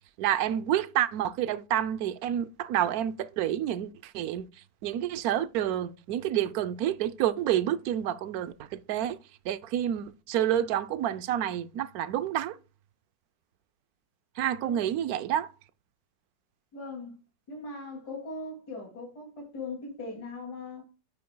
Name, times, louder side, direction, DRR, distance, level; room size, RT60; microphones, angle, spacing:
voice 1, 0.2-4.5 4.8-9.2 9.4-12.6 14.4-15.5, right 11 dB, 70° right, 1.1 m, -29 dB
voice 2, 16.7-17.2 17.5-20.9, left 3 dB, 70° left, 3.0 m, -40 dB
9.3 x 8.5 x 2.2 m
omnidirectional pair, 1.8 m